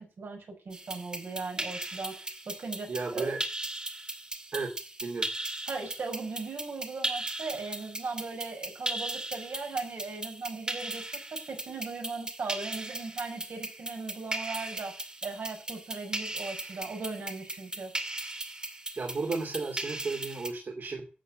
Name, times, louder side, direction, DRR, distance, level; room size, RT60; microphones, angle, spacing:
voice 1, 0.0-3.3 5.7-17.9, right 4 dB, 80° right, 2 dB, 5.9 m, -38 dB
sound 1, 0.7-20.5, right 1 dB, 25° right, 2.1 m, -38 dB
voice 2, 2.9-3.4 4.5-4.7 5.0-5.3 19.0-21.1, right 3 dB, 60° right, 1 dB, 2.8 m, -33 dB
12.5 x 8.2 x 7.7 m, 0.38 s
wide cardioid pair, 145°, 4 cm